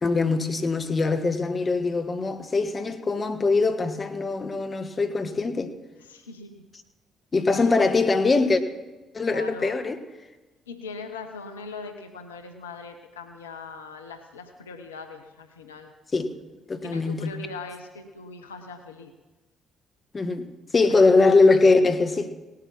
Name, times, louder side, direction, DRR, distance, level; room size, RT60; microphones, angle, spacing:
voice 1, 0.0-5.7 7.3-8.6 9.1-10.0 16.1-16.3 16.7-17.4 20.1-20.5 20.7-22.3, left 3 dB, 35° left, 8 dB, 1.4 m, -22 dB
voice 2, 6.0-6.7 7.6-7.7 9.2-9.8 10.7-15.9 16.8-19.1 20.9-21.0, left 3 dB, 85° left, 6 dB, 0.8 m, -40 dB
18.0 x 8.7 x 6.1 m, 1.1 s
hypercardioid pair, 45°, 0 cm